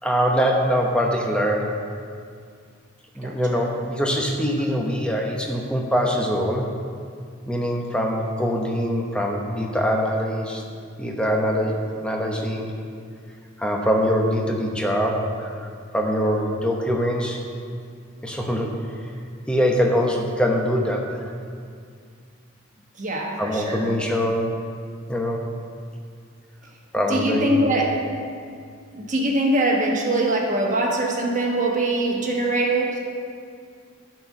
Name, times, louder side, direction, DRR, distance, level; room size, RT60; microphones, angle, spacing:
voice 1, 0.0-1.7 3.2-6.7 7.5-10.6 11.0-11.7 12.0-12.7 13.6-17.4 18.2-18.7 19.5-21.0 23.4-24.5 25.1-25.4 26.9-27.6, equal, 5° left, 0 dB, 0.9 m, -23 dB
voice 2, 3.2-3.6 17.7-17.8 23.0-24.1 27.1-28.0 28.9-33.0, right 1 dB, 40° right, -1 dB, 1.3 m, -23 dB
11.0 x 4.5 x 6.5 m, 2.2 s
head